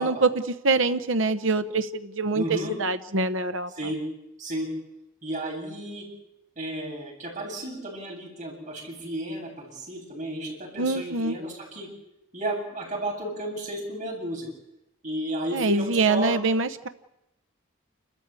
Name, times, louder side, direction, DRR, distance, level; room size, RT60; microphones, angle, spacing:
voice 1, 0.0-3.7 10.8-11.4 15.5-16.9, right 3 dB, 65° right, 10 dB, 1.0 m, -25 dB
voice 2, 2.3-2.7 3.8-4.0 4.4-4.7 5.2-6.1 6.6-11.9 12.3-14.5 15.0-16.4, right 1 dB, 40° right, -1 dB, 8.0 m, -33 dB
29.0 x 14.0 x 8.4 m, 0.88 s
head